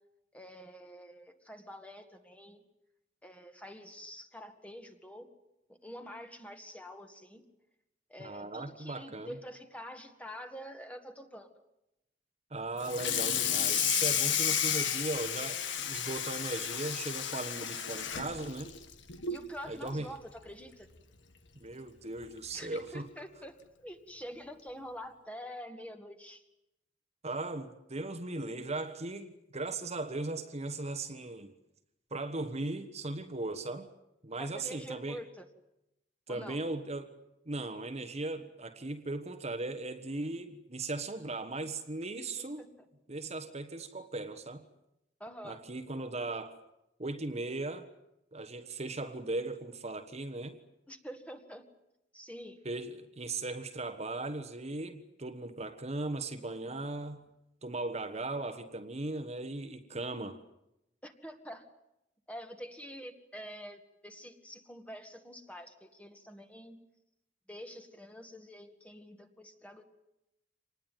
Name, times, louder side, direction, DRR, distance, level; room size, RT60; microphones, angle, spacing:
voice 1, 0.3-2.6 3.2-5.3 5.7-7.4 8.1-11.5 19.3-20.9 22.5-26.4 34.4-35.4 36.3-36.6 42.2-42.7 45.2-45.6 50.9-51.6 52.1-52.6 61.0-61.7 62.3-66.8 67.5-69.8, equal, 5° left, 6 dB, 1.9 m, -46 dB
voice 2, 8.2-9.4 12.5-18.7 19.7-20.1 21.5-23.1 27.2-31.5 32.1-33.9 34.2-35.2 36.3-37.2 37.5-42.6 43.1-44.6 45.4-46.6 47.0-47.9 48.3-50.6 52.6-57.3 57.6-60.4, right 2 dB, 35° right, 8 dB, 1.4 m, -38 dB
Water tap faucet / Sink (filling or washing), 12.8-19.5 19.9-20.1 20.5-20.6 21.0-21.1 22.2-22.3 22.8-23.0, left 9 dB, 75° left, 1.7 m, -32 dB
26.0 x 20.0 x 9.3 m, 0.88 s
head